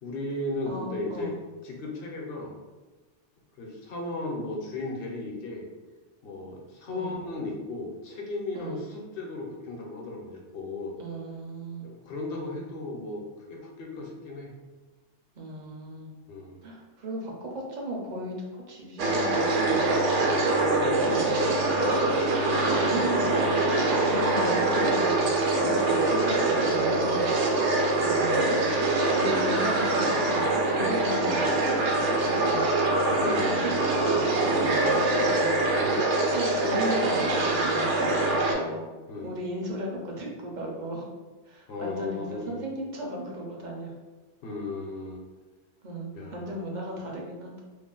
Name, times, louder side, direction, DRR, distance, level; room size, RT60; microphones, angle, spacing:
voice 1, 0.0-1.3 1.6-2.5 3.6-5.7 6.2-10.9 11.8-14.5 16.3-16.6 20.2-21.6 27.5-27.8 33.1-33.6 35.8-36.1 39.1-39.3 41.7-42.6 44.4-45.2 46.1-46.5, left 2 dB, 60° left, 0 dB, 0.8 m, -35 dB
voice 2, 0.7-1.4 6.9-7.2 8.5-8.8 11.0-11.9 15.4-16.1 16.6-18.3 18.7-19.9 21.0-21.4 22.7-23.3 24.0-27.2 28.0-28.6 29.1-32.7 33.1-35.6 36.1-38.8 39.2-41.1 41.4-43.9 45.8-47.6, right 1 dB, 55° right, -1 dB, 0.6 m, -36 dB
sound 1, 19.0-38.5, right 2 dB, 80° right, 0.9 m, -24 dB
2.5 x 2.1 x 3.7 m, 1.2 s
omnidirectional pair, 1.2 m